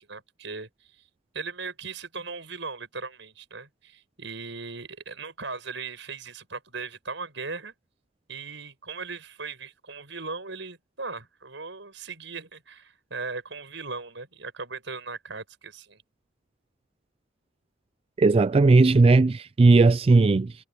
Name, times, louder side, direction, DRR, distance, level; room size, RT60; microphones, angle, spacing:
voice 1, 0.1-1.1 1.3-7.7 8.3-16.0, right 4 dB, 70° right, 6.9 m, -38 dB
voice 2, 18.2-20.5, right 3 dB, 30° right, 0.3 m, -17 dB
head